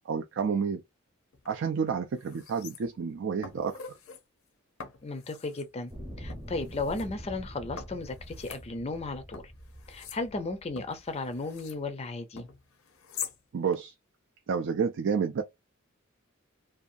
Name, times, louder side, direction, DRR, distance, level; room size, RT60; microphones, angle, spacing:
voice 1, 0.1-0.8 1.5-3.8 13.5-13.9 14.5-15.4, right 6 dB, 60° right, 0.4 m, -29 dB
sound 1, 1.3-1.5 1.9-3.1 3.4-4.2 4.8-5.7 6.3-7.1 7.8-9.0 9.3-11.8 12.4-13.4 13.7-13.8, left 6 dB, 80° left, 0.6 m, -44 dB
voice 2, 5.0-5.9 6.2-9.5 9.9-12.5, left 3 dB, 30° left, 0.4 m, -35 dB
sound 2, 5.9-11.2 11.9-12.0, equal, 20° right, 0.8 m, -45 dB
2.6 x 2.3 x 2.5 m
head